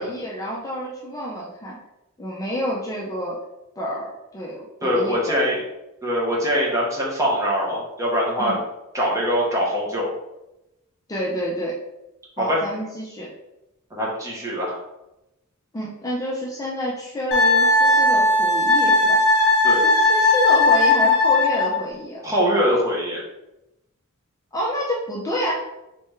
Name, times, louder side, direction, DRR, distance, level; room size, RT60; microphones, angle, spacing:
voice 1, 0.0-1.8 2.2-3.4 3.8-5.4 8.4-8.6 11.1-11.8 12.4-13.3 15.7-19.2 19.7-22.2 24.5-25.5, equal, 15° left, -5 dB, 0.5 m, -28 dB
voice 2, 4.8-5.6 6.0-8.5 8.9-10.1 12.4-12.6 13.9-14.8 19.6-19.8 22.2-23.2, equal, 15° right, -5 dB, 1.0 m, -23 dB
Wind instrument woodwind instrument, 17.3-21.8, left 2 dB, 50° left, 1.0 m, -17 dB
3.4 x 3.2 x 3.1 m, 0.92 s
head